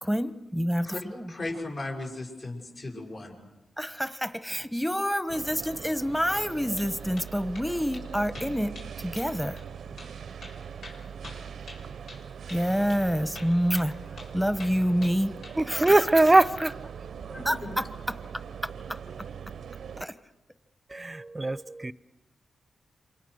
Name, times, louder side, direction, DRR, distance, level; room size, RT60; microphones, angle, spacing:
voice 1, 0.0-1.3 3.8-9.6 12.5-14.0 14.3-15.3 15.7-16.4 17.4-17.6 18.9-19.0 20.0-20.1, equal, 5° left, 1.3 m, -28 dB
voice 2, 1.3-3.5 17.3-17.7, left 2 dB, 55° left, 6.9 m, -36 dB
sound 1, 5.3-20.0, right 7 dB, 75° right, 0.8 m, -41 dB
sound 2, 6.5-6.9 7.2-7.7 7.9-8.1 8.3-8.9 9.2-9.3 9.6-9.7 10.0-10.1 10.4-12.2 12.5-12.6 12.9-13.0 13.3-14.3 14.6-15.6 15.9-16.4, left 2 dB, 80° left, 6.7 m, -45 dB
voice 3, 15.6-16.7 20.9-21.9, right 2 dB, 25° right, 0.8 m, -22 dB
28.0 x 25.0 x 6.6 m
cardioid pair, 65°, 0 cm